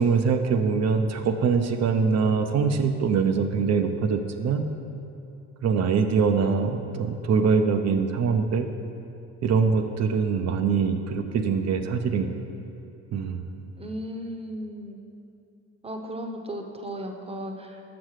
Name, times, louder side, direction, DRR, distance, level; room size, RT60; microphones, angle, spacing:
voice 1, 0.0-4.6 5.6-8.7 9.4-12.3 13.1-13.4, right 5 dB, 60° right, 6 dB, 0.6 m, -23 dB
voice 2, 13.8-15.0 15.8-17.8, equal, 20° right, 3 dB, 0.8 m, -35 dB
6.4 x 6.0 x 4.8 m, 2.8 s
cardioid pair, 90°, 30 cm